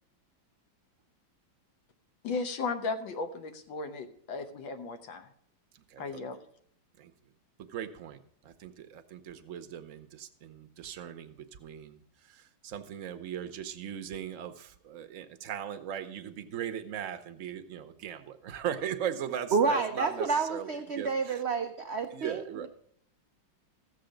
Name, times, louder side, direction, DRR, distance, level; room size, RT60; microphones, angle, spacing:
voice 1, 2.2-5.3 6.0-6.4, left 4 dB, 75° left, 8 dB, 1.7 m, -35 dB
voice 2, 5.7-6.2 7.0-7.1 7.6-21.4 22.1-22.7, right 9 dB, 55° right, 8 dB, 0.9 m, -39 dB
voice 3, 19.5-22.7, right 4 dB, 90° right, 6 dB, 0.5 m, -29 dB
14.5 x 6.8 x 5.1 m, 0.65 s
omnidirectional pair, 2.1 m